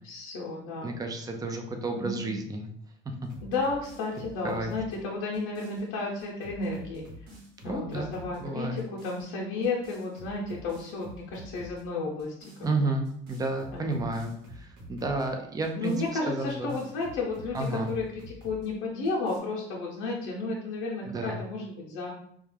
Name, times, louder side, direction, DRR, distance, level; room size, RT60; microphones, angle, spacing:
voice 1, 0.0-0.9 1.9-2.3 3.4-7.1 7.6-12.3 12.6-12.9 13.7-14.1 15.7-22.1, left 3 dB, 85° left, -4 dB, 0.6 m, -33 dB
voice 2, 0.8-2.7 4.4-4.7 7.7-8.1 8.4-8.8 12.6-16.0 16.3-16.7 17.5-17.9 21.1-21.4, right 2 dB, 20° right, 4 dB, 0.5 m, -31 dB
sound 1, 3.2-5.8 6.2-8.4 8.8-9.3 9.6-11.8 12.2-12.7 13.1-15.3 15.6-18.7 19.1-19.4, left 1 dB, 75° right, 1.1 m, -48 dB
2.3 x 2.2 x 3.2 m, 0.68 s
supercardioid pair, 90°, 21 cm